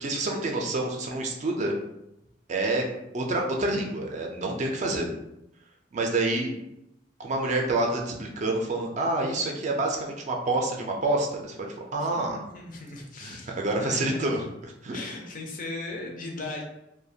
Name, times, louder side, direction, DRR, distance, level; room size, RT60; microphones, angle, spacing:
voice 1, 0.0-1.8 2.5-2.8 3.1-5.1 5.9-6.5 7.2-11.6 11.9-12.4 13.2-14.4 14.8-15.0, right 2 dB, 40° right, 1 dB, 0.4 m, -27 dB
voice 2, 12.0-13.6 13.8-14.3 14.9-16.6, left 2 dB, 45° left, 1 dB, 0.5 m, -38 dB
2.4 x 2.2 x 2.7 m, 0.85 s
head